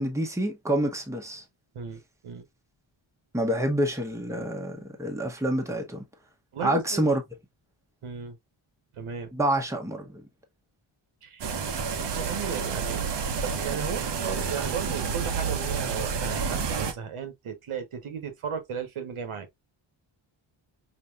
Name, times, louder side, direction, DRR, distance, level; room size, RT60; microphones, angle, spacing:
voice 1, 0.0-1.4 3.3-6.0 6.6-7.2 9.3-10.2, right 1 dB, 5° right, 1.0 m, -27 dB
voice 2, 1.7-2.5 3.6-3.7 6.5-7.0 8.0-8.4 8.9-9.3 11.2-11.5 12.0-13.1 13.4-19.5, right 7 dB, 85° right, 1.2 m, -35 dB
sound 1, 11.4-16.9, right 5 dB, 55° right, 0.8 m, -29 dB
5.2 x 2.8 x 2.4 m
wide cardioid pair, 130°, 49 cm